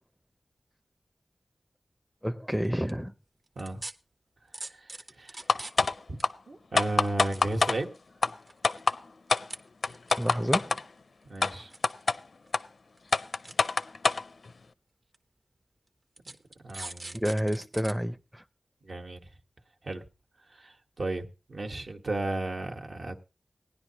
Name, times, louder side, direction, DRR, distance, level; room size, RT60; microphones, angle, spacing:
voice 1, 2.2-3.1 10.2-10.8 17.1-18.4, equal, 5° right, 0.5 m, -29 dB
sound 1, 2.6-2.9 3.6-3.9 4.5-5.9 6.2-6.3 7.0-8.0 8.4-8.9 9.4-9.6 9.9-10.5 11.4-12.2 12.5-12.6 13.0-13.1 13.4-13.5 14.4-14.5 15.1-15.2 16.2-17.9 18.3-18.4, right 2 dB, 45° right, 0.9 m, -42 dB
voice 2, 4.5-4.9 5.2-5.4 6.1-6.2 6.5-7.9 11.2-11.7 16.6-17.2 18.8-19.3 19.8-20.1 20.5-23.2, right 2 dB, 70° right, 1.4 m, -34 dB
sound 2, 5.5-5.9 6.2-6.3 6.8-7.8 8.2-8.3 8.6-9.0 9.3-9.4 9.8-10.8 11.4-11.5 11.8-12.2 12.5-12.6 13.1-14.2, left 4 dB, 70° left, 0.5 m, -24 dB
18.0 x 10.5 x 2.9 m
wide cardioid pair, 70°, 0 cm